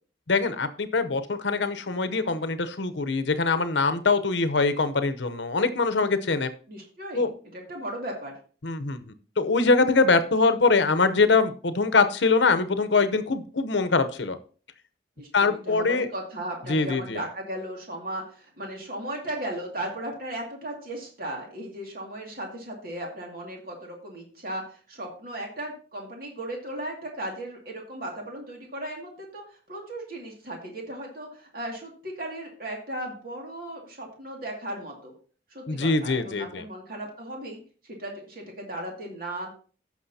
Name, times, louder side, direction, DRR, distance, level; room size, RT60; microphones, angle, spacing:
voice 1, 0.3-6.5 7.1-7.3 8.6-14.4 15.3-16.1 16.7-17.2 35.7-36.6, left 4 dB, 75° left, 11 dB, 0.8 m, -23 dB
voice 2, 6.7-7.3 7.5-8.3 15.2-29.4 29.7-35.1 35.5-37.6 38.0-39.5, right 1 dB, 55° right, 0 dB, 2.3 m, -36 dB
15.5 x 6.1 x 2.8 m, 0.39 s
head